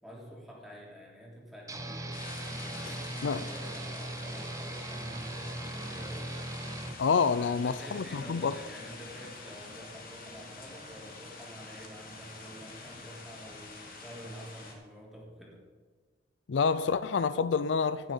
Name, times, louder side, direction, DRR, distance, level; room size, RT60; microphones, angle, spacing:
voice 1, 0.0-2.2 2.6-6.3 7.4-15.6, equal, ahead, 3.4 m, -48 dB
sound 1, 1.7-7.0, right 1 dB, 20° right, 1.0 m, -39 dB
sound 2, 2.1-14.7, left 3 dB, 50° left, 2.6 m, -46 dB
voice 2, 7.0-8.5 16.5-18.1, left 5 dB, 75° left, 0.4 m, -28 dB
17.0 x 7.5 x 5.4 m
head